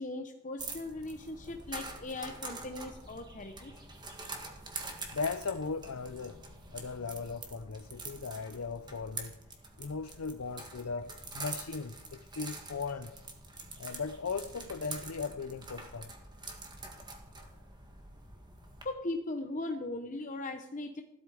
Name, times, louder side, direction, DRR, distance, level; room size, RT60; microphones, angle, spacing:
voice 1, 0.0-3.7 18.8-21.0, left 2 dB, 35° left, 0.9 m, -38 dB
sound 1, 0.6-18.8, right 3 dB, 20° right, 2.1 m, -45 dB
voice 2, 5.1-6.4 6.7-9.4 9.8-13.1 13.8-16.1, left 4 dB, 75° left, 0.6 m, -38 dB
16.0 x 12.5 x 4.9 m
head